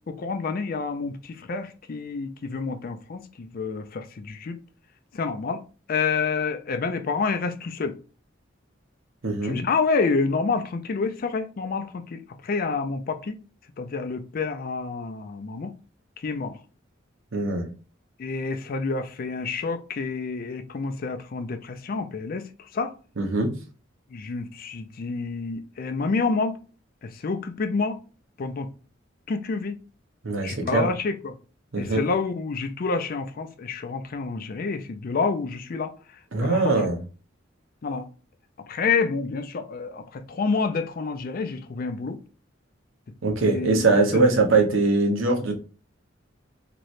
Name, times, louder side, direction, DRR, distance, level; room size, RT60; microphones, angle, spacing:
voice 1, 0.1-4.6 5.1-5.6 5.9-8.0 9.4-13.4 13.8-15.7 16.2-16.6 18.2-22.5 22.7-22.9 24.1-26.6 27.0-28.0 28.4-28.7 29.3-29.7 30.4-31.3 31.8-35.9 36.4-36.9 37.8-38.1 38.7-42.2 43.4-43.9 44.1-44.2, left 4 dB, 45° left, 0.4 m, -28 dB
voice 2, 17.3-17.7 23.2-23.5 30.2-30.9 31.7-32.0 36.3-37.0 43.2-45.5, right 3 dB, 85° right, 0.9 m, -22 dB
3.1 x 2.9 x 2.6 m
head